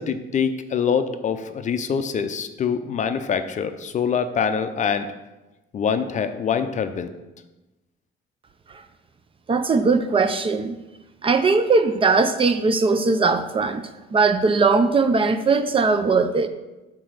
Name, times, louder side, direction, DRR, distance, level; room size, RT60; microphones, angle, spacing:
voice 1, 0.0-5.1 5.7-7.1, left 7 dB, 40° left, 9 dB, 0.5 m, -24 dB
voice 2, 9.5-10.8 11.2-13.8 14.1-16.5, right 4 dB, 25° right, 9 dB, 0.4 m, -19 dB
6.0 x 4.1 x 6.3 m, 1.1 s
cardioid pair, 140°, 20 cm